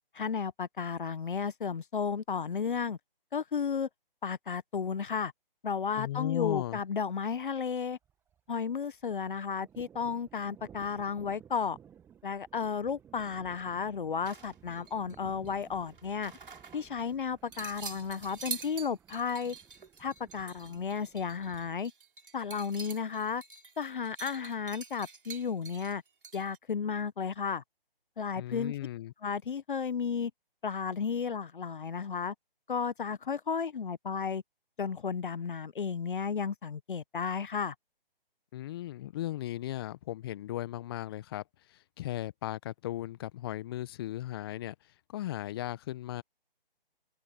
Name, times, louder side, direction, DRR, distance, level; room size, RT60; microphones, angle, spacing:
voice 1, 0.1-3.0 3.3-3.9 4.2-5.3 5.6-8.0 8.5-11.8 12.2-16.3 16.7-19.6 20.0-21.9 22.3-23.4 23.8-26.0 26.3-27.6 28.2-28.7 29.2-30.3 30.6-32.3 32.7-34.4 34.8-37.7, left 6 dB, 60° left, 1.1 m, -33 dB
voice 2, 6.0-6.8 28.4-29.1 38.5-44.7 45.1-46.2, left 14 dB, 25° left, 1.0 m, -36 dB
Thunder, 6.3-6.4 6.7-6.8 7.0-8.6 8.8-21.8, right 8 dB, 10° right, 1.4 m, -57 dB
sound 1, 14.2-15.2 15.4-17.0 17.5-26.6, right 5 dB, 65° right, 5.1 m, -46 dB
figure-of-eight pair, 145°, 29 cm